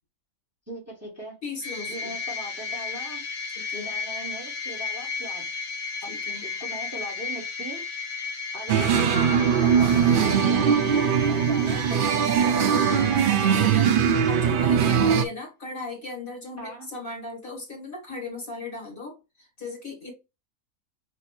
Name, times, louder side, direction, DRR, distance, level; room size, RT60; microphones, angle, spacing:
voice 1, 0.7-1.4 1.9-3.2 3.7-5.4 6.0-6.1 6.4-7.8 8.5-10.8 11.3-12.9 16.6-16.9, right 1 dB, 10° right, 1.4 m, -39 dB
voice 2, 1.4-2.2 3.5-3.9 6.1-6.4 13.3-20.1, left 3 dB, 40° left, 1.8 m, -37 dB
sound 1, 1.6-14.5, left 5 dB, 65° left, 1.4 m, -35 dB
sound 2, 8.7-15.2, right 7 dB, 60° right, 0.6 m, -21 dB
6.4 x 2.6 x 3.1 m
omnidirectional pair, 1.4 m